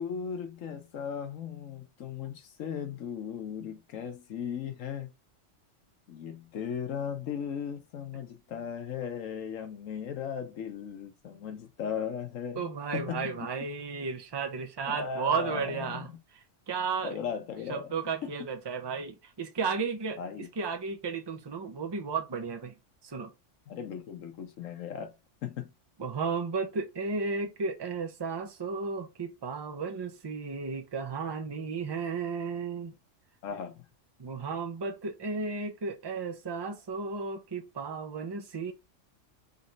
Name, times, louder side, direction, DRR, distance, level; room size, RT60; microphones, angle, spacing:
voice 1, 0.0-5.1 6.1-13.3 14.9-16.2 17.0-17.9 18.2-18.3 20.2-20.5 23.7-25.1 25.4-25.7 33.4-33.9, left 7 dB, 85° left, 1.2 m, -37 dB
voice 2, 12.5-16.1 16.3-17.2 17.7-22.7 23.0-23.3 26.0-32.9 34.2-38.7, right 5 dB, 30° right, 0.5 m, -34 dB
4.1 x 3.1 x 3.9 m
omnidirectional pair, 1.3 m